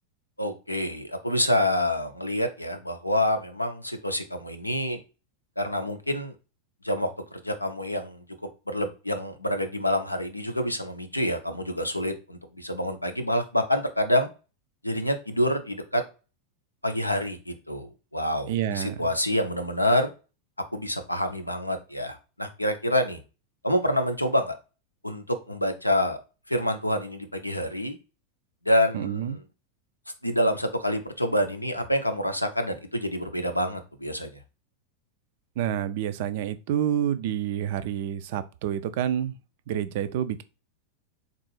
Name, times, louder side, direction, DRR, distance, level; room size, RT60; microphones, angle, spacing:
voice 1, 0.4-5.0 5.6-6.3 6.8-8.2 8.7-14.3 14.8-16.0 16.8-20.1 20.7-23.2 23.6-24.6 25.0-26.2 26.5-28.0 28.6-29.4 30.2-34.3, left 1 dB, 85° left, 0.5 m, -27 dB
voice 2, 18.5-19.1 28.9-29.4 35.6-39.4 39.7-40.4, right 10 dB, 50° right, 0.3 m, -28 dB
3.6 x 2.4 x 3.2 m
figure-of-eight pair, 90°, 0 cm